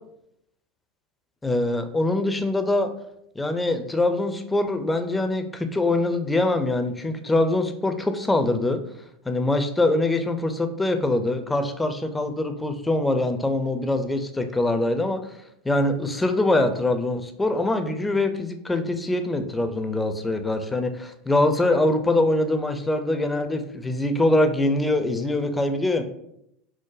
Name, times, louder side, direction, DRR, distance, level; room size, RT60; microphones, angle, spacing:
voice 1, 1.4-2.9 3.4-8.8 9.3-15.4 15.6-26.0, left 2 dB, 10° left, 7 dB, 0.4 m, -23 dB
4.6 x 2.0 x 2.4 m, 0.77 s
figure-of-eight pair, 80°, 0 cm